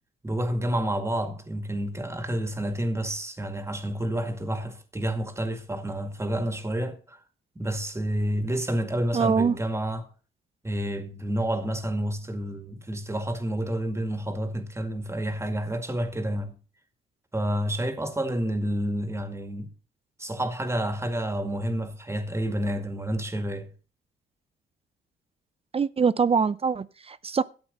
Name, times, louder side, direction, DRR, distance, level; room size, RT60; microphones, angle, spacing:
voice 1, 0.2-7.2 7.6-10.1 10.6-16.6 17.3-19.7 20.2-23.7, right 1 dB, 15° right, 2.1 m, -29 dB
voice 2, 9.1-9.5 25.7-27.4, right 5 dB, 30° right, 0.6 m, -23 dB
12.5 x 8.0 x 5.3 m
cardioid pair, 90°, 20 cm